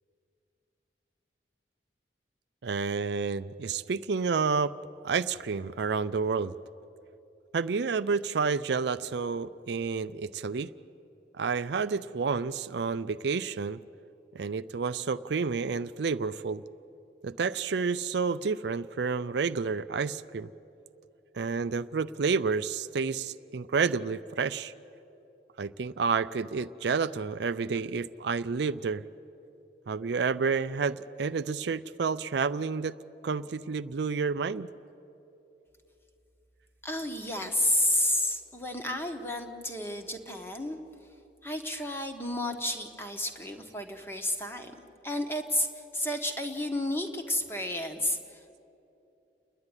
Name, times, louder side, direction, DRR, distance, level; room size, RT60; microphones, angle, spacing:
voice 1, 2.6-4.7 5.0-6.5 7.5-10.7 11.4-13.8 14.3-16.6 17.2-20.5 21.3-24.7 25.6-29.0 29.9-33.0 33.2-34.7, right 5 dB, 70° right, 13 dB, 0.4 m, -30 dB
voice 2, 36.8-40.8 41.4-44.7 45.0-48.6, left 1 dB, 15° left, 5 dB, 1.3 m, -31 dB
29.5 x 10.5 x 9.7 m, 2.9 s
head